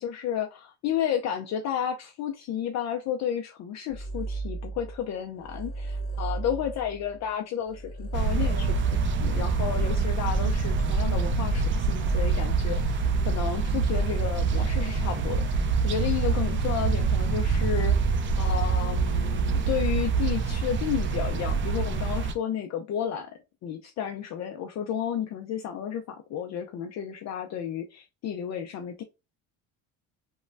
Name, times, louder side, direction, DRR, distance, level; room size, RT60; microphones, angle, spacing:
voice 1, 0.0-18.0 18.3-23.3 23.6-29.0, left 9 dB, 45° left, 0.4 m, -32 dB
sound 1, 3.9-5.1 5.3-11.9, right 3 dB, 25° left, 1.0 m, -37 dB
sound 2, 8.1-22.3, right 4 dB, 35° right, 0.4 m, -25 dB
3.0 x 2.2 x 2.5 m
cardioid pair, 115°, 37 cm